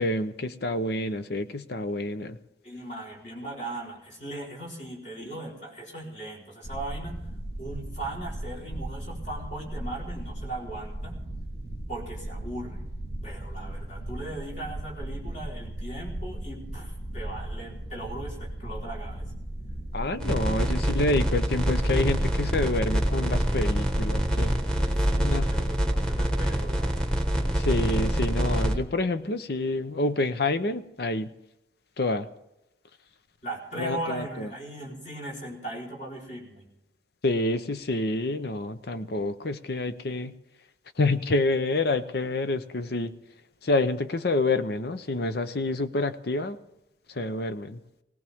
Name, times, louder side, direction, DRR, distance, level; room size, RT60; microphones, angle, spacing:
voice 1, 0.0-2.4 19.9-24.6 25.2-25.5 27.6-31.3 32.0-32.3 33.7-34.5 37.2-40.3 41.0-43.1 43.6-46.6 47.1-47.8, left 2 dB, 60° left, 11 dB, 0.7 m, -28 dB
voice 2, 2.6-7.2 7.6-11.2 11.9-12.9 13.2-19.3 20.4-20.7 25.0-27.2 33.4-36.7, right 1 dB, 40° left, -2 dB, 4.0 m, -38 dB
sound 1, 6.6-26.3, right 1 dB, 80° left, 3.9 m, -37 dB
sound 2, 20.2-28.7, equal, 5° left, 1.4 m, -26 dB
18.5 x 18.0 x 3.6 m, 0.87 s
head